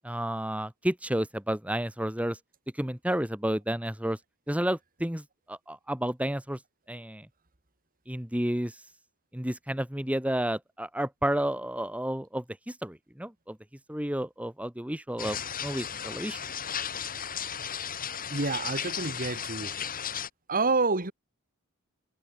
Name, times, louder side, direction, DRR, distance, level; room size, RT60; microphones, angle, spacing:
voice 1, 0.0-2.4 2.7-4.2 4.5-6.6 6.9-7.3 8.1-8.8 9.3-13.6 13.9-16.4, right 1 dB, 5° right, 2.1 m, -31 dB
sound 1, 15.2-20.3, left 8 dB, 40° left, 3.5 m, -35 dB
voice 2, 18.3-19.7 20.5-21.1, right 3 dB, 40° right, 3.0 m, -28 dB
head